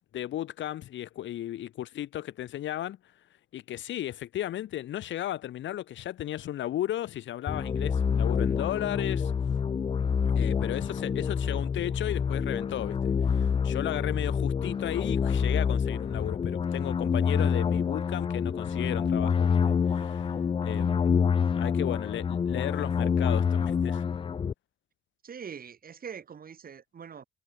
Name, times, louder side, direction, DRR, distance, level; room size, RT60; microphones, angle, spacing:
voice 1, 0.0-3.0 3.5-9.3 10.3-20.4 20.6-21.1 21.6-24.0, left 12 dB, 70° left, 1.2 m, -35 dB
sound 1, 7.5-24.5, left 6 dB, 25° left, 0.4 m, -27 dB
voice 2, 25.2-27.2, right 7 dB, 45° right, 4.2 m, -43 dB
cardioid pair, 90°, 20 cm